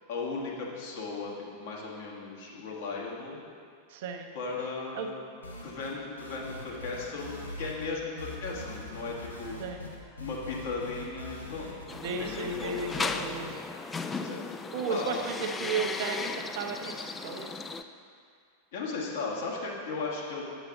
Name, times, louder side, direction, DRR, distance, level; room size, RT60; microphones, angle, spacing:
voice 1, 0.1-3.4 4.3-5.2 5.6-9.6 10.2-11.7 12.2-13.4 14.2-15.5 18.7-20.4, left 3 dB, 55° left, -3 dB, 1.5 m, -36 dB
voice 2, 3.9-4.3 4.9-5.1 9.6-9.9 11.9-13.5 14.2-14.4 14.7-17.5, right 5 dB, 50° right, 4 dB, 0.7 m, -34 dB
sound 1, 5.4-5.9 6.2-7.9 8.2-13.4, left 1 dB, 80° left, 1.0 m, -43 dB
sound 2, 11.9-17.8, left 4 dB, 15° left, 0.3 m, -36 dB
8.0 x 6.7 x 3.7 m, 2.2 s
figure-of-eight pair, 90°, 0 cm